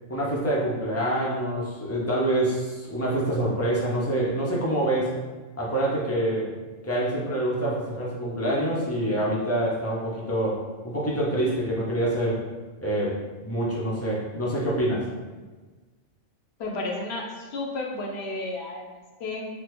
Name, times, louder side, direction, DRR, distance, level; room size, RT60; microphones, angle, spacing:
voice 1, 0.1-5.2 5.6-6.5 6.8-12.4 12.8-15.0, right 1 dB, 25° left, -7 dB, 0.3 m, -26 dB
voice 2, 16.6-19.5, left 2 dB, 65° left, 0 dB, 0.8 m, -32 dB
3.4 x 2.0 x 2.9 m, 1.3 s
omnidirectional pair, 1.3 m